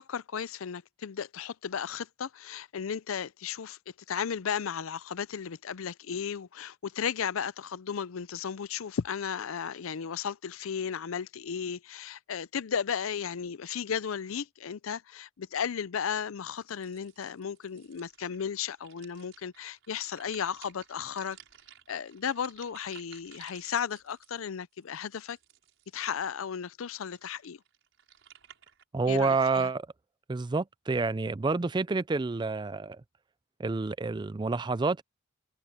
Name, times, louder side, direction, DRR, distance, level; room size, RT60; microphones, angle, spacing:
voice 1, 0.0-3.8 4.1-21.4 21.9-25.4 25.9-27.6 29.1-29.7, left 7 dB, 85° left, 0.5 m, -35 dB
sound 1, 16.5-26.2 26.8-28.8, right 10 dB, 70° right, 6.2 m, -56 dB
voice 2, 28.9-29.9 30.3-33.0 33.6-35.0, right 3 dB, 20° right, 0.4 m, -28 dB
head